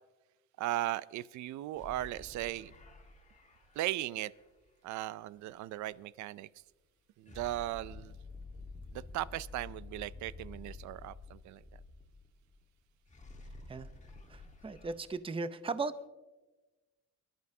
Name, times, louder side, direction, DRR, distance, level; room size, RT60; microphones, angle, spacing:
voice 1, 0.6-2.7 3.8-4.3 4.8-6.5 7.2-8.2 8.9-11.6, right 15 dB, 70° right, 19 dB, 0.4 m, -37 dB
sound 1, 1.8-4.7 7.3-12.6 12.9-15.1, left 3 dB, 25° left, 1.4 m, -50 dB
voice 2, 14.3-16.1, right 4 dB, 20° right, 12 dB, 0.6 m, -37 dB
22.0 x 11.5 x 2.7 m, 1.2 s
cardioid pair, 90°, 30 cm